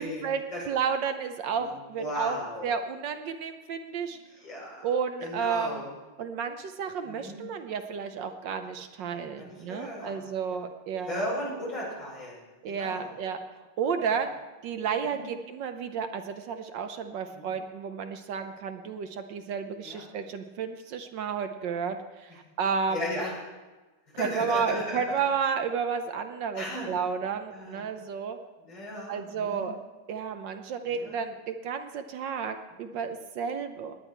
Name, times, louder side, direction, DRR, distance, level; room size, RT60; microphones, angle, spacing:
voice 1, 0.0-0.4 0.7-2.4 2.6-4.2 4.8-5.8 6.2-11.3 12.6-13.4 13.8-14.3 14.6-23.2 24.2-28.4 29.1-29.7 30.1-33.9, right 6 dB, 70° right, 7 dB, 1.4 m, -32 dB
voice 2, 1.5-2.7 4.0-4.8 5.2-5.9 7.0-7.4 9.1-10.2 11.0-13.1 14.0-14.1 15.1-15.3 17.3-17.5 19.8-20.1 22.9-23.3 24.2-25.2 26.5-26.9 27.5-27.9 28.7-29.6 30.9-31.2 32.8-32.9, left 1 dB, 70° left, -5 dB, 6.3 m, -36 dB
19.0 x 9.9 x 4.5 m, 1.2 s
omnidirectional pair, 2.2 m